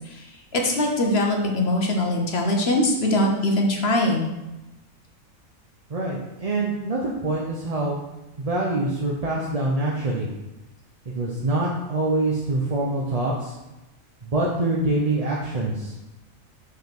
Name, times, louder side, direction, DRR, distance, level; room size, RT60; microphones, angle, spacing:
voice 1, 0.5-4.3, left 1 dB, 50° left, 1 dB, 1.3 m, -22 dB
voice 2, 5.9-8.0 8.4-10.3 11.0-13.5 14.2-15.9, right 2 dB, 35° right, -4 dB, 0.8 m, -25 dB
5.6 x 4.8 x 6.1 m, 1.0 s
omnidirectional pair, 1.4 m